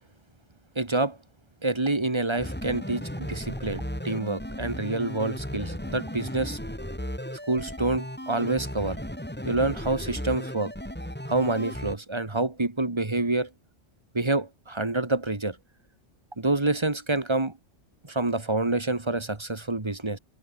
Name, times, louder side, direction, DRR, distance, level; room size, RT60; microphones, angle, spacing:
voice 1, 0.8-1.2 1.6-6.6 7.5-9.0 9.4-10.7 11.3-13.5 14.1-15.6 16.4-17.5 18.1-20.2, right 2 dB, 20° right, 1.8 m, -27 dB
sound 1, 2.4-12.0, equal, 10° left, 4.6 m, -35 dB
omnidirectional pair, 1.3 m